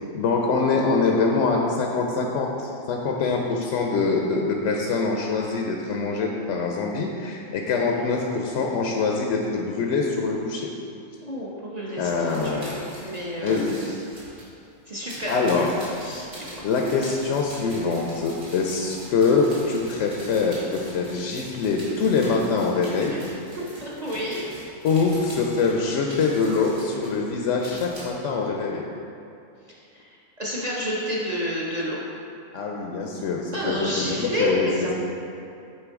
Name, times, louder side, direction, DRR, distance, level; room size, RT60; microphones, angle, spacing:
voice 1, 0.1-10.7 12.0-12.9 13.4-14.0 15.3-15.7 16.6-23.2 24.8-28.9 32.5-34.9, left 4 dB, 65° left, 0 dB, 0.8 m, -24 dB
voice 2, 11.2-13.9 14.9-15.7 16.0-16.7 23.0-23.2 23.8-24.4 24.7-24.8 29.9-32.0 33.5-34.9, equal, 40° right, -6 dB, 0.6 m, -30 dB
sound 1, 12.1-14.5 15.1-28.1, right 1 dB, 70° right, 2.0 m, -43 dB
8.9 x 3.7 x 3.6 m, 2.5 s
omnidirectional pair, 1.6 m